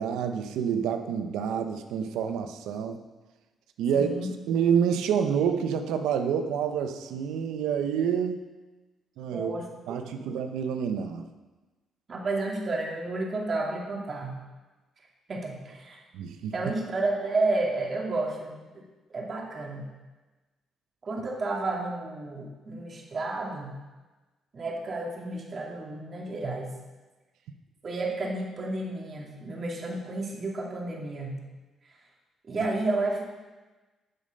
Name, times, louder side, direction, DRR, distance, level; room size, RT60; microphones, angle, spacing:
voice 1, 0.0-3.0 3.8-4.1 4.5-8.4 9.2-9.5 9.9-11.3 16.1-16.5, right 7 dB, 90° right, 6 dB, 0.9 m, -28 dB
voice 2, 3.9-4.3 9.3-10.4 12.1-14.4 15.3-16.0 16.5-18.8 19.1-19.9 21.0-23.8 24.5-26.7 27.8-31.4 32.5-33.2, right 2 dB, 45° right, -1 dB, 2.6 m, -31 dB
11.0 x 7.3 x 5.3 m, 1.2 s
cardioid pair, 90°, 0 cm